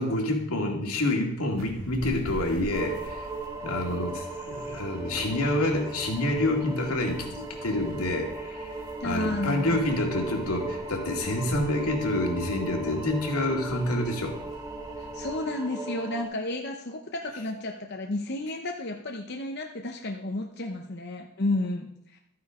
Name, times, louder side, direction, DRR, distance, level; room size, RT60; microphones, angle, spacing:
voice 1, 0.0-3.3 3.6-8.7 9.0-14.4, left 1 dB, 85° left, 1 dB, 2.2 m, -28 dB
sound 1, 1.5-15.3, equal, 85° right, 2.7 m, -46 dB
sound 2, 2.7-16.2, right 2 dB, 15° right, 1.2 m, -38 dB
voice 2, 9.0-9.9 15.0-22.2, left 2 dB, 50° left, 2 dB, 0.8 m, -32 dB
13.5 x 9.6 x 3.7 m, 0.75 s
head